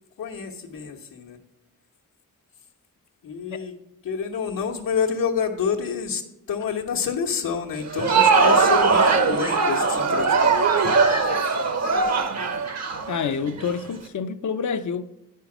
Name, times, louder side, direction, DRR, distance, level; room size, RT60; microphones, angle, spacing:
voice 1, 0.2-1.4 3.2-3.7 4.0-6.2 6.5-11.8, left 6 dB, 85° left, 1.2 m, -29 dB
Crowd, 7.8-13.7, right 4 dB, 55° right, 0.9 m, -20 dB
voice 2, 13.1-15.0, left 6 dB, 65° left, 0.6 m, -28 dB
9.5 x 5.6 x 5.9 m
wide cardioid pair, 130°, 33 cm